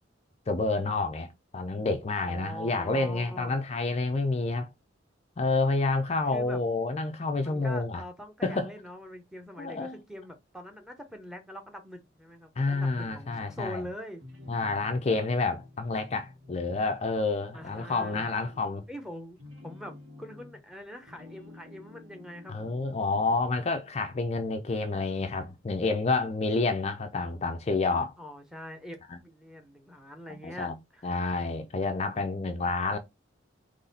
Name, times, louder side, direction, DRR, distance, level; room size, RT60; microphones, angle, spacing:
voice 1, 0.5-4.7 5.4-8.0 8.4-8.7 9.6-10.0 12.6-13.8 14.5-18.8 22.5-28.1 29.1-29.2 30.4-30.8 31.0-33.0, left 3 dB, 35° left, 0.5 m, -29 dB
voice 2, 2.2-3.6 6.3-6.6 7.4-14.2 17.5-18.3 18.9-22.5 28.2-31.1, equal, 5° right, 0.9 m, -43 dB
sound 1, 12.9-13.8 14.1-17.2 17.5-20.7 21.0-23.7, left 2 dB, 75° right, 2.2 m, -50 dB
4.0 x 3.2 x 4.1 m
head